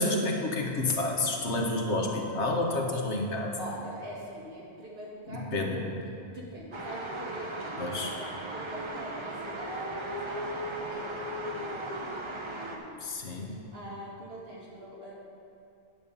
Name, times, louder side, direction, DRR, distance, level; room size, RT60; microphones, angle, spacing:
voice 1, 0.0-3.6 5.3-5.8 7.8-8.1 13.0-13.6, left 2 dB, 90° left, 1 dB, 1.5 m, -29 dB
voice 2, 3.6-7.8 8.1-10.6 10.9-13.0 13.3-15.1, equal, 60° right, -5 dB, 2.3 m, -44 dB
sound 1, 6.7-12.8, right 1 dB, 30° right, 0.8 m, -37 dB
10.0 x 5.4 x 6.8 m, 2.6 s
omnidirectional pair, 1.1 m